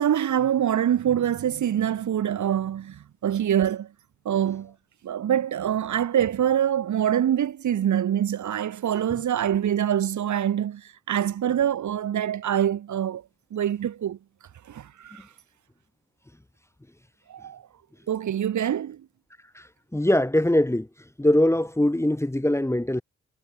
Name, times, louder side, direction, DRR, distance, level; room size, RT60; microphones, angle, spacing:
voice 1, 0.0-3.9 4.2-4.7 5.0-13.2 13.5-14.2 14.7-15.2 17.3-17.6 18.1-19.0, right 10 dB, 70° right, 2.3 m, -25 dB
voice 2, 19.9-20.9 21.2-23.0, left 1 dB, 10° left, 1.4 m, -22 dB
supercardioid pair, 50°, 30 cm